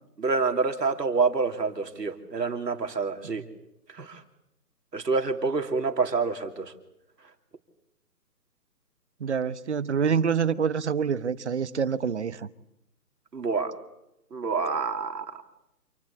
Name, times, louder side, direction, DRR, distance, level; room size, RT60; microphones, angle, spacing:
voice 1, 0.2-3.4 4.0-4.2 4.9-6.7 13.3-13.7 14.3-15.3, right 4 dB, 80° right, 6 dB, 3.1 m, -27 dB
voice 2, 9.2-12.5, right 6 dB, 45° right, 17 dB, 1.0 m, -26 dB
27.5 x 20.0 x 8.4 m, 0.86 s
hypercardioid pair, 160°, 48 cm